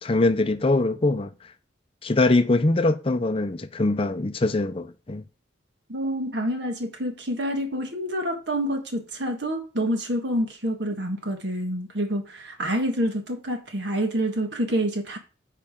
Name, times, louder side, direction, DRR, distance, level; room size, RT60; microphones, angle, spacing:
voice 1, 0.0-1.3 2.0-5.2, left 2 dB, 30° left, 0.5 m, -22 dB
voice 2, 5.9-15.2, equal, 65° right, 1.5 m, -27 dB
9.0 x 4.9 x 3.6 m
head